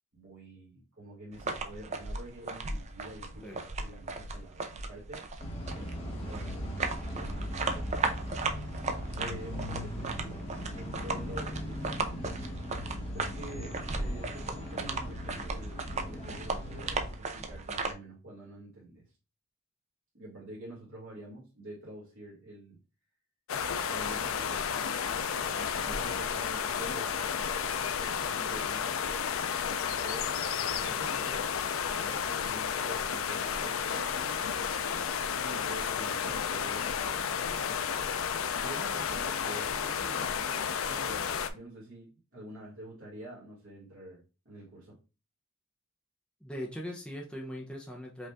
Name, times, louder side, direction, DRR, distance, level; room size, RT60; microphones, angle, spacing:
voice 1, 0.1-5.2 5.7-7.9 9.2-12.2 13.1-19.0 20.1-22.8 23.8-24.8 25.4-29.3 29.8-31.5 31.8-34.6 35.4-37.7 38.6-45.0, right 1 dB, 60° right, -5 dB, 1.7 m, -47 dB
sound 1, 1.3-17.9, right 3 dB, 35° right, 0.5 m, -37 dB
sound 2, 5.4-17.1, equal, 30° left, 1.2 m, -39 dB
sound 3, 23.5-41.5, left 7 dB, 80° left, 0.5 m, -32 dB
voice 2, 46.4-48.3, equal, 5° left, -1 dB, 0.7 m, -40 dB
5.1 x 2.5 x 3.5 m, 0.31 s
head